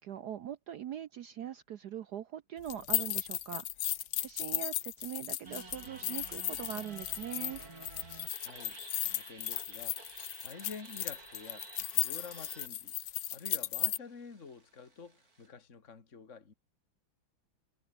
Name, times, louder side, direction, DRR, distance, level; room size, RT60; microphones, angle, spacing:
voice 1, 0.0-3.7 4.0-7.6, right 10 dB, 65° right, 1.2 m, -42 dB
sound 1, 2.7-14.0, left 13 dB, 65° left, 1.3 m, -35 dB
sound 2, 5.4-15.5, right 3 dB, 45° right, 4.4 m, -52 dB
voice 2, 8.4-12.9 13.3-16.5, left 5 dB, 35° left, 2.6 m, -49 dB
omnidirectional pair, 2.3 m